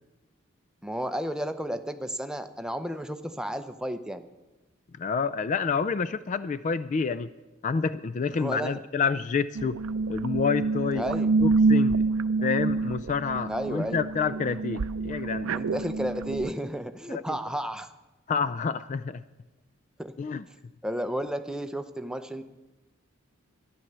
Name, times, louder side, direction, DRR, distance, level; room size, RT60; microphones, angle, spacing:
voice 1, 0.8-4.2 8.3-8.8 10.9-11.3 13.5-14.0 15.5-17.9 20.0-20.1 20.8-22.4, equal, 5° right, 8 dB, 0.6 m, -32 dB
voice 2, 5.0-7.3 7.6-9.8 10.1-11.0 11.4-12.0 12.4-15.5 17.1-17.4 18.3-19.2 20.2-20.5, left 5 dB, 35° left, 14 dB, 0.3 m, -28 dB
sound 1, 9.5-16.5, right 3 dB, 80° right, 0.5 m, -27 dB
13.0 x 10.5 x 6.8 m, 1.1 s
head